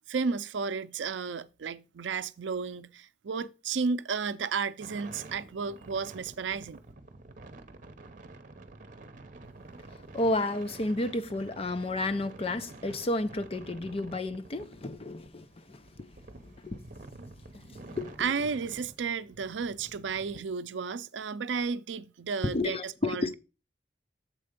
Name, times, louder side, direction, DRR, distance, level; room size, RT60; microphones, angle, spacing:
voice 1, 0.1-6.8 18.2-23.3, right 5 dB, 85° right, 0.5 m, -33 dB
sound 1, 4.8-20.4, right 2 dB, 45° right, 0.9 m, -49 dB
voice 2, 10.1-16.1 16.4-16.8 17.5-18.3 22.4-23.3, left 2 dB, 35° left, 0.5 m, -32 dB
7.6 x 4.3 x 5.1 m
head